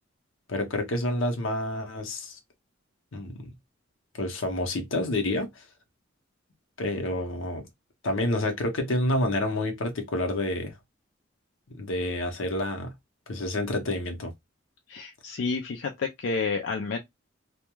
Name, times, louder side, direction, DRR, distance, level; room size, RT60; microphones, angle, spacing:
voice 1, 0.5-2.4 3.1-3.5 4.2-5.6 6.8-7.6 8.0-10.7 11.7-12.9 13.3-14.3, left 1 dB, 85° left, 0.8 m, -28 dB
voice 2, 14.9-17.0, left 4 dB, 65° left, 0.4 m, -30 dB
2.2 x 2.2 x 2.9 m
head